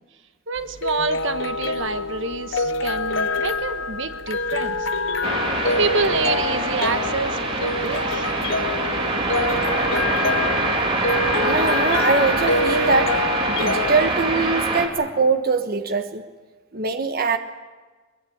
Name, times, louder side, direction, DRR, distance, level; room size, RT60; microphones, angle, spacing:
voice 1, 0.5-4.9 5.8-8.3, right 4 dB, 65° right, 9 dB, 1.4 m, -27 dB
sound 1, 0.6-14.1, left 3 dB, 65° left, 0.9 m, -26 dB
sound 2, 5.2-14.9, right 2 dB, 25° right, 3.0 m, -24 dB
voice 2, 11.4-13.1 13.5-16.2 16.7-17.4, right 4 dB, 50° right, 6 dB, 1.3 m, -22 dB
23.0 x 22.0 x 8.7 m, 1.3 s
head